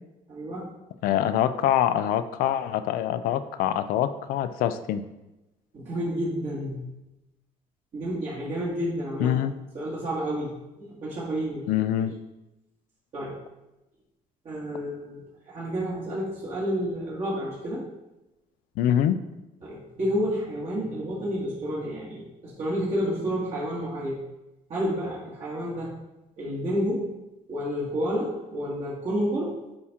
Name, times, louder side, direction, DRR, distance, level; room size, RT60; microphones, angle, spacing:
voice 1, 0.3-0.7 5.7-6.9 7.9-9.4 9.7-11.7 12.0-12.1 13.1-13.4 14.4-17.8 19.6-24.2 24.7-25.9 26.4-27.1 27.5-29.6, equal, 50° right, -8 dB, 2.2 m, -30 dB
voice 2, 1.0-5.0 9.2-9.5 11.7-12.2 18.8-19.2, left 10 dB, 85° left, 12 dB, 0.5 m, -24 dB
8.7 x 4.3 x 3.7 m, 0.98 s
cardioid pair, 125°, 14 cm